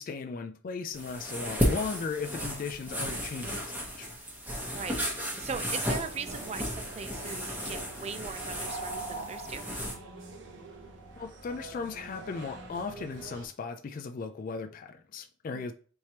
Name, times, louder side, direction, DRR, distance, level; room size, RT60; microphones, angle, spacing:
voice 1, 0.0-4.1 11.2-15.7, left 4 dB, 45° left, 0.3 m, -37 dB
sound 1, 0.9-9.9, equal, 10° right, 1.0 m, -34 dB
voice 2, 4.7-5.1 5.4-9.6 15.5-15.7, right 6 dB, 35° right, 0.3 m, -39 dB
sound 2, 5.9-13.5, right 2 dB, 70° right, 0.9 m, -44 dB
4.4 x 3.2 x 2.9 m
head